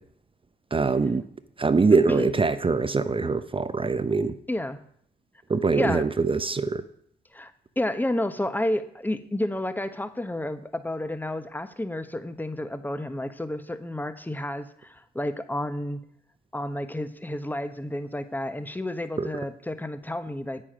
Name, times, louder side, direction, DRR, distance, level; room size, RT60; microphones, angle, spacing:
voice 1, 0.7-1.2 1.6-4.3 5.5-6.8 19.2-19.3, right 4 dB, 25° right, 12 dB, 0.8 m, -23 dB
voice 2, 4.5-4.8 5.7-6.1 7.3-7.5 7.8-16.0 16.5-20.6, left 1 dB, 10° left, 11 dB, 1.1 m, -30 dB
9.1 x 8.8 x 5.1 m, 0.65 s
hypercardioid pair, 45°, 19 cm